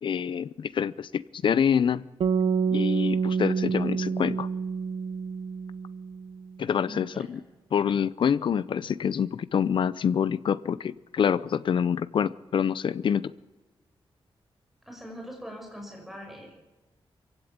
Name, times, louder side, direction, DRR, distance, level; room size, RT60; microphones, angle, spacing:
voice 1, 0.0-2.1 2.7-4.5 6.6-7.4 7.7-13.3, left 7 dB, 60° left, 17 dB, 0.7 m, -26 dB
sound 1, 2.2-6.4, right 6 dB, 70° right, 1.0 m, -27 dB
voice 2, 6.8-7.4 14.9-16.6, equal, ahead, 1 dB, 6.4 m, -42 dB
23.5 x 16.0 x 8.9 m, 1.1 s
wide cardioid pair, 180°, 10 cm